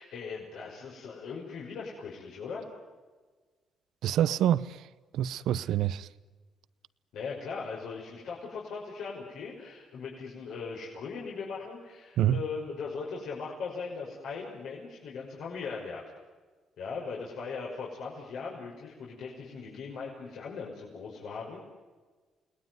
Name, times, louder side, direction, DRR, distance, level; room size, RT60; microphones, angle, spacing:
voice 1, 0.0-2.7 5.7-5.8 7.1-16.0 16.8-21.6, left 5 dB, 80° left, 5.9 m, -39 dB
voice 2, 4.0-4.8 5.1-6.1 12.2-12.4, right 11 dB, 80° right, 0.8 m, -26 dB
29.5 x 19.5 x 9.5 m
cardioid pair, 90°, 0 cm